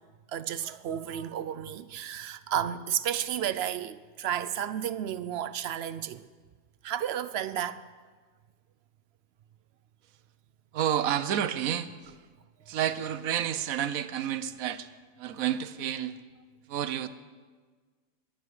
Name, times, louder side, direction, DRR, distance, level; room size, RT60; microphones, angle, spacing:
voice 1, 0.3-6.2 6.8-7.8, right 10 dB, 60° right, 0.7 m, -32 dB
voice 2, 10.7-12.3 12.7-14.9 15.2-16.2 16.7-17.1, right 10 dB, 80° right, 1.2 m, -30 dB
21.5 x 10.0 x 4.8 m
omnidirectional pair, 1.4 m